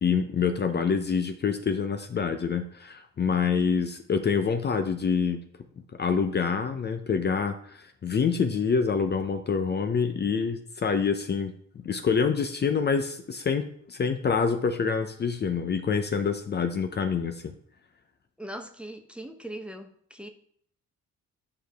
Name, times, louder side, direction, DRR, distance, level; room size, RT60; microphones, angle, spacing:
voice 1, 0.0-5.4 6.0-11.5 11.8-17.5, left 6 dB, 35° left, 0.6 m, -26 dB
voice 2, 18.4-20.3, right 1 dB, 5° right, 0.7 m, -40 dB
8.7 x 4.8 x 3.4 m
cardioid pair, 90°, 30 cm